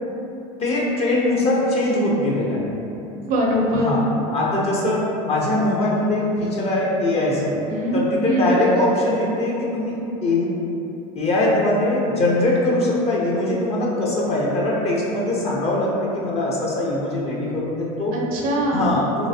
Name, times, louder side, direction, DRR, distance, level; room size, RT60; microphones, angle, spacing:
voice 1, 0.6-2.6 3.7-4.0 4.3-7.5 7.9-10.6 11.1-18.2 18.7-19.3, left 1 dB, 35° left, -5 dB, 0.7 m, -21 dB
voice 2, 3.2-3.9 7.7-8.0 8.2-8.6 18.1-18.9, equal, 50° right, -2 dB, 0.6 m, -22 dB
3.1 x 3.0 x 2.7 m, 2.9 s
supercardioid pair, 115°, 18 cm